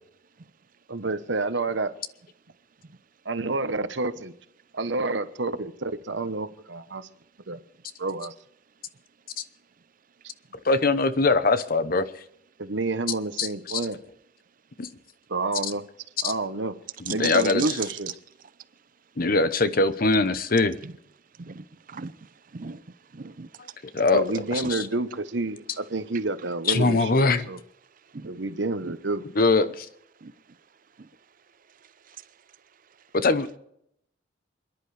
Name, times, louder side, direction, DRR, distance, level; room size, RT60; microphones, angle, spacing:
voice 1, 0.9-1.9 3.2-4.3 4.7-7.1 7.5-7.6 8.0-8.3 12.6-14.0 15.3-15.8 16.2-16.8 17.1-18.1 24.1-27.6 28.2-29.2, right 3 dB, 70° right, 11 dB, 1.1 m, -29 dB
voice 2, 10.6-12.1 13.4-13.8 14.8-14.9 16.2-16.3 17.1-17.6 19.2-20.8 23.9-24.2 24.5-24.8 26.7-27.5 29.4-29.9 33.2-33.6, left 3 dB, 50° left, 13 dB, 0.9 m, -22 dB
voice 3, 17.1-17.7 20.8-20.9 21.4-22.1 22.5-22.8 23.1-23.5 28.1-28.3 28.8-29.0 30.2-30.3, right 7 dB, 45° right, 15 dB, 0.6 m, -36 dB
28.0 x 10.5 x 3.4 m, 0.73 s
head